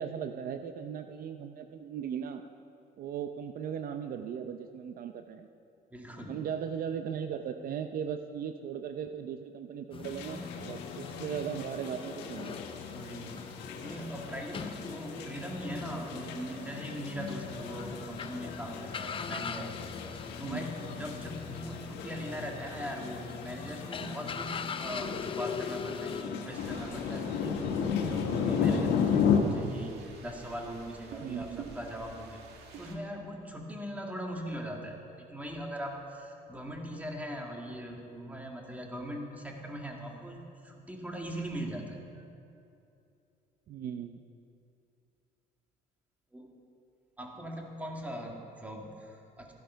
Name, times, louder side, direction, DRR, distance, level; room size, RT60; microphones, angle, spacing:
voice 1, 0.0-2.4 3.0-5.5 6.3-12.6 20.4-20.7 31.2-31.7 43.7-44.2, right 8 dB, 60° right, 7 dB, 0.7 m, -37 dB
voice 2, 5.9-6.4 12.9-13.5 13.8-19.9 20.4-32.4 32.8-42.3 46.3-46.5 47.2-49.5, equal, 10° right, 0 dB, 2.1 m, -40 dB
sound 1, 9.9-26.2, left 6 dB, 30° left, 0.6 m, -42 dB
sound 2, 10.0-29.4, left 7 dB, 90° left, 1.6 m, -35 dB
sound 3, 26.5-33.0, right 5 dB, 75° right, 2.0 m, -49 dB
14.5 x 11.5 x 5.8 m, 2.6 s
cardioid pair, 110°, 17 cm